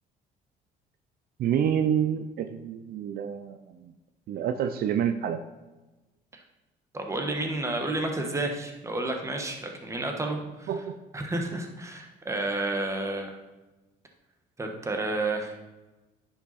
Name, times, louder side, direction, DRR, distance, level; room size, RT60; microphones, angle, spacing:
voice 1, 1.4-3.9 4.3-5.4 10.7-11.0, right 9 dB, 60° right, 9 dB, 0.6 m, -28 dB
voice 2, 6.9-10.7 11.1-13.4 14.6-15.6, right 2 dB, 15° right, 3 dB, 1.5 m, -31 dB
10.0 x 5.8 x 4.2 m, 1.1 s
cardioid pair, 110°, 17 cm